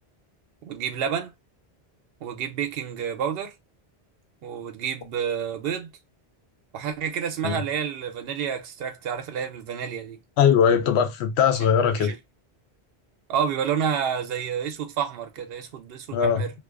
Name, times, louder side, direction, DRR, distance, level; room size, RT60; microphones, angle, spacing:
voice 1, 0.6-1.3 2.2-3.5 4.4-5.9 6.7-10.2 12.0-12.2 13.3-16.5, right 8 dB, 70° right, 0.8 m, -29 dB
voice 2, 10.4-12.1 16.1-16.5, left 7 dB, 90° left, 0.9 m, -20 dB
2.4 x 2.3 x 2.3 m
omnidirectional pair, 1.1 m